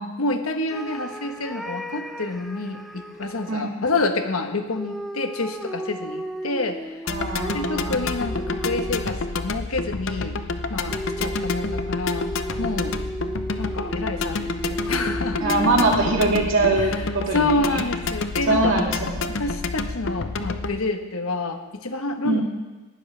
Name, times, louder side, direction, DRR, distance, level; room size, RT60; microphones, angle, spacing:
voice 1, 0.2-7.0 7.5-10.4 10.7-12.3 12.6-13.0 13.6-15.4 16.7-18.7 19.4-22.4, left 2 dB, 80° left, 6 dB, 1.2 m, -28 dB
sound 1, 0.7-3.7 4.7-9.5 10.9-17.0, equal, ahead, 0.6 m, -34 dB
sound 2, 7.1-20.8, left 3 dB, 60° left, 0.6 m, -29 dB
voice 2, 7.1-8.0 15.4-17.5 18.5-19.4 22.2-22.4, right 2 dB, 65° right, 0 dB, 2.1 m, -22 dB
18.0 x 12.0 x 3.4 m, 1.2 s
head